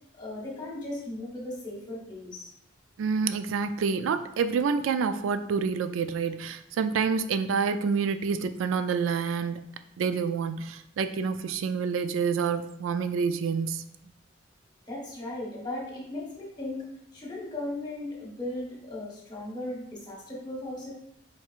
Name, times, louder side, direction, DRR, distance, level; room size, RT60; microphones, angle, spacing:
voice 1, 0.1-2.5 14.9-20.9, left 1 dB, 20° left, -3 dB, 1.3 m, -37 dB
voice 2, 3.0-9.6 10.0-13.9, right 5 dB, 85° right, 10 dB, 0.3 m, -28 dB
4.5 x 4.3 x 2.4 m, 0.74 s
head